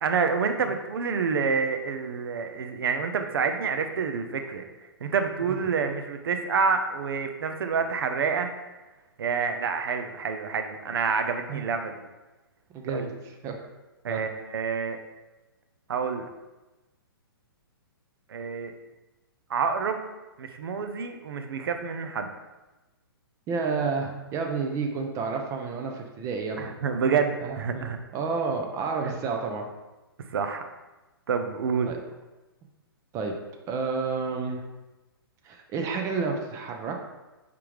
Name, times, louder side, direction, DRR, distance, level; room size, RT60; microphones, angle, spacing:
voice 1, 0.0-4.6 5.0-8.5 9.2-11.9 12.9-13.1 14.0-15.0 15.9-16.3 18.3-18.7 19.5-20.0 20.4-22.3 26.6-28.0 29.0-29.1 30.3-30.6 31.3-31.9, right 5 dB, 70° right, 7 dB, 0.6 m, -28 dB
voice 2, 12.7-13.6 14.1-14.2 23.5-26.7 27.4-27.9 28.1-29.7 31.9-32.0 33.1-33.4 33.7-34.6 35.4-36.9, right 4 dB, 25° right, 3 dB, 0.6 m, -30 dB
5.0 x 3.5 x 3.0 m, 1.1 s
hypercardioid pair, 130°, 13 cm